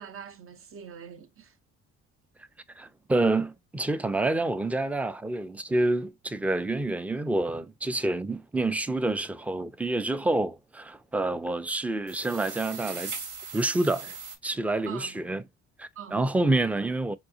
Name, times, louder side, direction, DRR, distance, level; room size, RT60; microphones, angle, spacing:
voice 1, 0.0-1.6 14.8-15.2 16.0-16.2, right 8 dB, 45° right, 0.6 m, -43 dB
voice 2, 2.8-13.1 13.5-14.1 14.4-15.4 15.8-17.2, right 2 dB, 5° right, 0.3 m, -28 dB
sound 1, 12.1-14.4, right 4 dB, 85° right, 1.5 m, -39 dB
3.7 x 2.7 x 2.5 m
cardioid pair, 90°, 30 cm